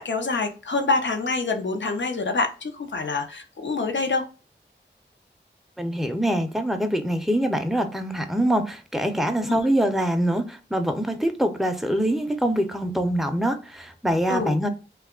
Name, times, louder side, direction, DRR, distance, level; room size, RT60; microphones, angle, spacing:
voice 1, 0.0-4.2 9.5-9.6 14.3-14.6, left 3 dB, 75° left, 5 dB, 0.6 m, -26 dB
voice 2, 5.8-14.7, right 1 dB, ahead, 7 dB, 0.5 m, -24 dB
2.9 x 2.3 x 3.6 m, 0.34 s
wide cardioid pair, 55°, 19 cm